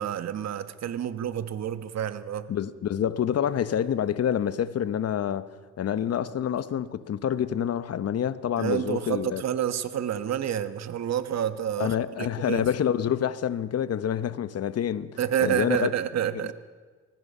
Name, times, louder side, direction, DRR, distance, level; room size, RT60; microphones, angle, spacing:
voice 1, 0.0-2.5 8.6-12.6 15.2-16.5, right 10 dB, 60° right, 1.3 m, -29 dB
voice 2, 2.5-5.5 5.8-9.4 11.8-15.9, left 9 dB, 55° left, 1.0 m, -27 dB
25.0 x 20.0 x 5.6 m
cardioid pair, 90°, 30 cm